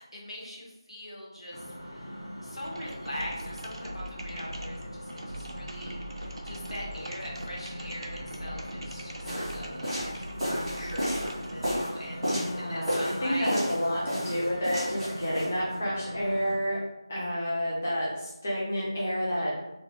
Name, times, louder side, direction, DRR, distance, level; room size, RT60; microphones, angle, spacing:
voice 1, 0.0-1.7 1.9-2.1 2.4-13.6, equal, 90° left, -4 dB, 1.1 m, -41 dB
sound 1, 1.5-16.6, equal, 65° left, 0.8 m, -42 dB
sound 2, 2.6-11.9, right 1 dB, 70° right, 0.5 m, -42 dB
sound 3, 9.2-12.5 12.9-13.8 14.1-15.5, equal, ahead, 0.8 m, -31 dB
voice 2, 12.3-16.8 17.1-19.5, equal, 20° left, -7 dB, 0.4 m, -30 dB
2.4 x 2.2 x 3.6 m, 0.97 s
figure-of-eight pair, 180°, 3 cm